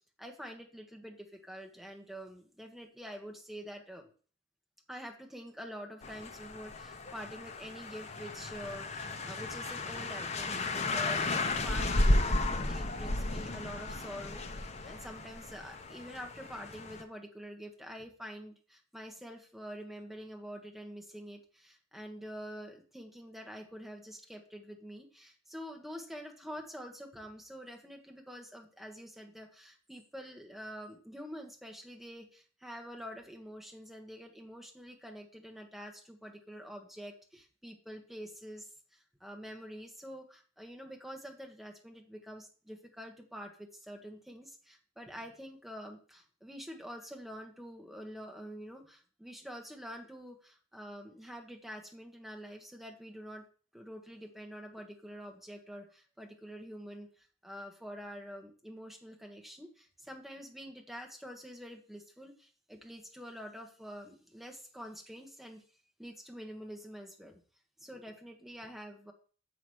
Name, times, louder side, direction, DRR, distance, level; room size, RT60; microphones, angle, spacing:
voice 1, 0.2-4.1 4.9-53.4 53.7-65.6 66.0-67.3 67.8-69.1, equal, ahead, 2 dB, 1.3 m, -47 dB
sound 1, 6.0-17.0, left 2 dB, 35° left, 0.7 m, -34 dB
7.1 x 5.0 x 6.2 m, 0.41 s
head